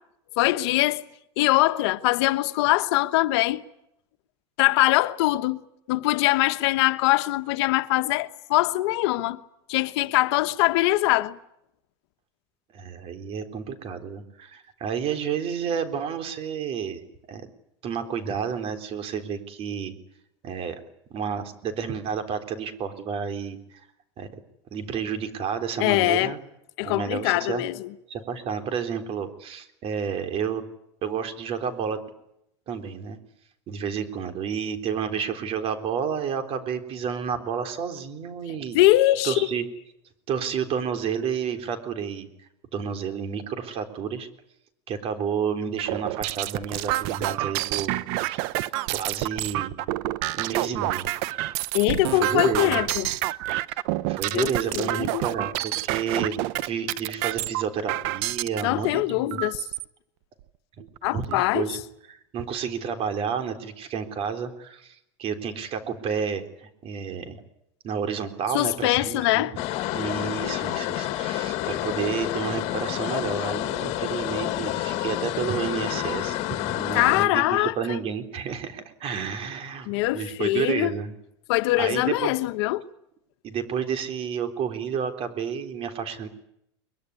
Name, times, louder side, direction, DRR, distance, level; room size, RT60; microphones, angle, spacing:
voice 1, 0.4-1.0 1.4-3.6 4.6-5.6 5.9-9.4 9.7-11.4 25.8-26.3 26.8-27.9 38.7-39.3 51.7-53.1 54.3-55.2 58.6-59.6 61.0-61.6 68.5-69.5 76.9-78.0 79.9-80.9 81.5-82.9, left 18 dB, 70° left, 1.2 m, -22 dB
voice 2, 12.7-17.0 17.3-17.5 17.8-19.9 20.4-20.8 21.1-23.6 24.2-24.3 24.7-26.4 26.8-27.6 28.1-30.7 31.0-32.0 32.7-33.2 33.7-38.8 39.2-39.7 40.3-42.3 42.7-44.3 44.9-48.5 48.9-49.7 50.3-51.1 52.1-52.8 54.0-56.4 56.6-59.4 61.1-61.8 62.1-67.4 67.8-69.5 69.9-76.4 76.7-81.1 81.7-82.3 83.4-86.3, right 7 dB, 45° right, 3.8 m, -30 dB
sound 1, 45.8-58.6 59.3-59.8 60.4-60.5 60.8-61.4, right 16 dB, 65° right, 1.0 m, -28 dB
sound 2, 69.6-77.3, left 15 dB, 55° left, 2.1 m, -29 dB
23.0 x 22.5 x 9.8 m
supercardioid pair, 125°, 14 cm